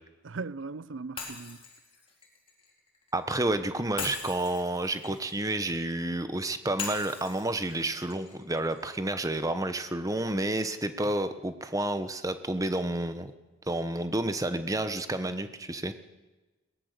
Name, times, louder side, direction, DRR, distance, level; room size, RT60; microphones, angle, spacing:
voice 1, 0.2-1.6, right 4 dB, 65° right, 0.6 m, -38 dB
Shatter, 1.2-3.2 4.0-6.1 6.8-8.9, left 5 dB, 25° left, 3.9 m, -41 dB
voice 2, 3.1-13.3 13.7-15.9, right 1 dB, 15° right, 1.0 m, -30 dB
22.0 x 18.5 x 6.7 m
head